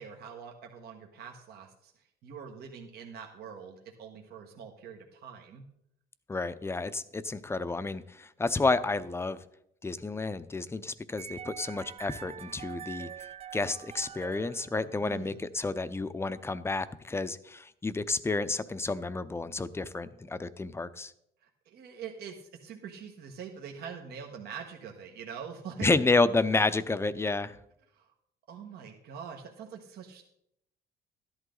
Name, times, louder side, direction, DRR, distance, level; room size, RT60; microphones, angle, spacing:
voice 1, 0.0-5.6 15.0-15.5 21.4-25.9 27.9-28.1 28.5-30.2, right 7 dB, 70° right, 2 dB, 1.5 m, -44 dB
voice 2, 6.3-9.4 9.8-13.1 13.5-21.1 25.8-27.6, left 3 dB, 15° left, 13 dB, 0.6 m, -30 dB
sound 1, 11.2-15.3, right 9 dB, 35° right, 0.5 m, -45 dB
13.0 x 11.0 x 3.9 m, 0.76 s
cardioid pair, 110°, 17 cm